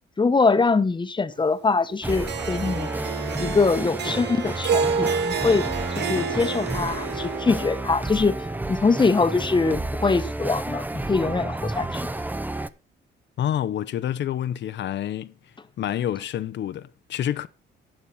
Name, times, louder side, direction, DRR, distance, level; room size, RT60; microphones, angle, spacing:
voice 1, 0.2-2.9 3.4-12.1, left 4 dB, 25° left, 1.0 m, -23 dB
sound 1, 2.0-12.7, right 2 dB, 10° right, 0.7 m, -31 dB
Harp, 2.1-8.5, right 5 dB, 60° right, 1.3 m, -29 dB
voice 2, 13.4-15.3 15.8-17.5, left 10 dB, 65° left, 0.7 m, -28 dB
11.5 x 8.9 x 4.2 m
cardioid pair, 90°, 20 cm